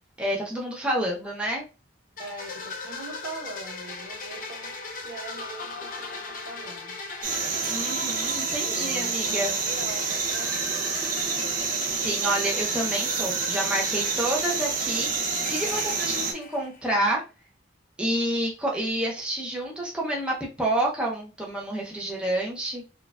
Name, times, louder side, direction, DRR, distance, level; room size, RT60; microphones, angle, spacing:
voice 1, 0.2-1.7 7.7-9.5 11.9-17.2 18.0-22.8, right 1 dB, 5° right, 0.7 m, -29 dB
sound 1, 2.2-16.9, left 3 dB, 45° left, 0.5 m, -38 dB
voice 2, 2.2-4.8 5.0-7.0 8.7-10.9, right 2 dB, 80° right, 1.1 m, -41 dB
sound 2, 7.2-16.3, right 5 dB, 45° right, 0.7 m, -28 dB
4.3 x 2.4 x 2.3 m
head